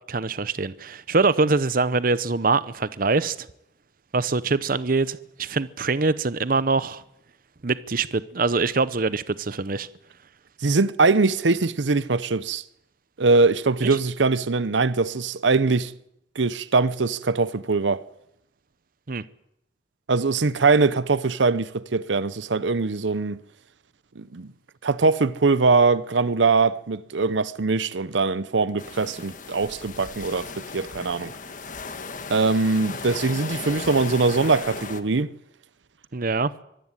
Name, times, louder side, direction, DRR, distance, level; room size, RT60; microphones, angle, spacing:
voice 1, 0.1-3.5 4.1-7.0 7.6-9.9 19.1-19.2 36.1-36.5, right 3 dB, 50° right, 0.8 m, -24 dB
voice 2, 10.6-12.6 13.2-15.9 16.4-18.0 20.1-23.4 24.2-24.5 24.8-31.3 32.3-35.3, right 4 dB, 90° right, 0.8 m, -22 dB
sound 1, 28.8-35.0, left 4 dB, 45° left, 1.5 m, -36 dB
24.0 x 15.0 x 9.8 m
head